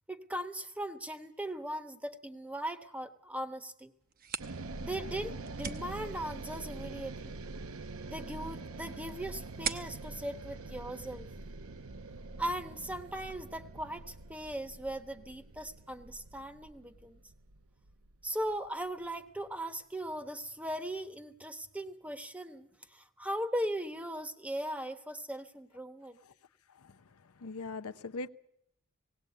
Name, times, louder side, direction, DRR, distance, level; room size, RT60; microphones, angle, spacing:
voice 1, 0.1-3.9 4.8-7.3 8.1-11.3 12.4-17.2 18.2-26.2, right 1 dB, 5° right, 1.1 m, -39 dB
sound 1, 4.0-11.5, right 7 dB, 40° right, 1.0 m, -45 dB
sound 2, 4.4-18.7, right 3 dB, 70° right, 0.9 m, -45 dB
voice 2, 26.7-28.3, left 3 dB, 85° left, 0.7 m, -42 dB
18.5 x 18.0 x 8.3 m
head